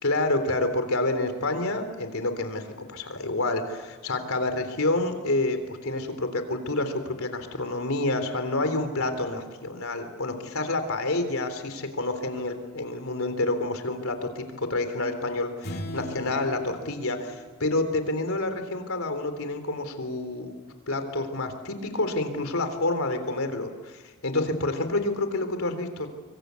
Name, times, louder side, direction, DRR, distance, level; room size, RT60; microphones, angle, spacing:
voice 1, 0.0-20.6 20.9-26.1, left 2 dB, 70° left, 8 dB, 3.6 m, -28 dB
sound 1, 15.6-18.3, equal, 45° left, 2.7 m, -39 dB
24.5 x 24.5 x 8.3 m, 1.3 s
head